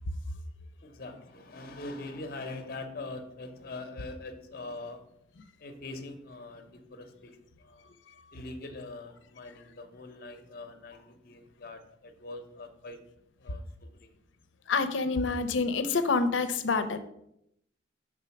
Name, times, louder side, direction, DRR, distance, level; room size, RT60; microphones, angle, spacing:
voice 1, 0.8-5.0 5.6-7.9 8.3-13.0 13.4-14.1, left 2 dB, 50° left, 7 dB, 0.7 m, -43 dB
voice 2, 14.7-17.0, left 4 dB, 85° left, 10 dB, 0.6 m, -27 dB
6.0 x 3.6 x 5.8 m, 0.77 s
head